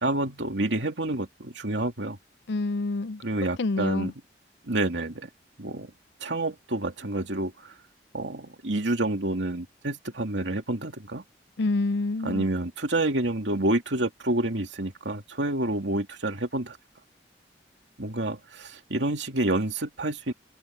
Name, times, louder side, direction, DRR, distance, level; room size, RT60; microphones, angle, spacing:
voice 1, 0.0-2.2 3.2-4.1 4.7-5.3 5.6-5.9 6.2-7.7 8.1-11.2 12.2-16.8 18.0-20.3, right 2 dB, 85° right, 2.7 m, -28 dB
voice 2, 2.5-3.2 3.6-4.1 11.6-12.4, left 3 dB, 75° left, 0.5 m, -27 dB
open air
head